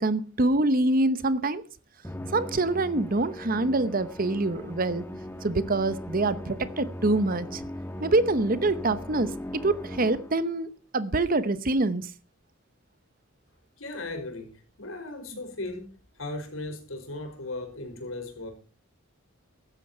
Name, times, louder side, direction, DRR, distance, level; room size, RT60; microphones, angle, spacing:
voice 1, 0.0-1.6 2.3-5.1 5.4-7.6 8.0-12.1, right 2 dB, 45° right, 0.9 m, -25 dB
Musical instrument, 2.0-10.6, left 1 dB, 10° left, 1.4 m, -39 dB
voice 2, 13.8-18.5, left 2 dB, 75° left, 5.3 m, -37 dB
15.5 x 12.5 x 4.4 m
head